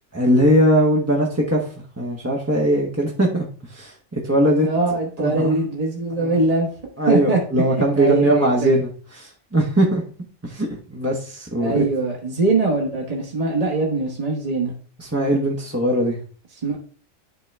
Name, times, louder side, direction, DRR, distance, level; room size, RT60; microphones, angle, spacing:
voice 1, 0.1-1.7 2.0-4.7 5.2-5.7 6.1-6.3 7.0-8.9 9.2-10.0 10.4-11.8 15.0-16.2, right 1 dB, 15° right, -2 dB, 0.8 m, -20 dB
voice 2, 4.6-6.7 7.1-7.4 7.7-8.7 11.6-14.7 16.6-16.8, right 3 dB, 30° right, -2 dB, 1.2 m, -22 dB
10.5 x 3.8 x 3.3 m, 0.41 s
omnidirectional pair, 1.4 m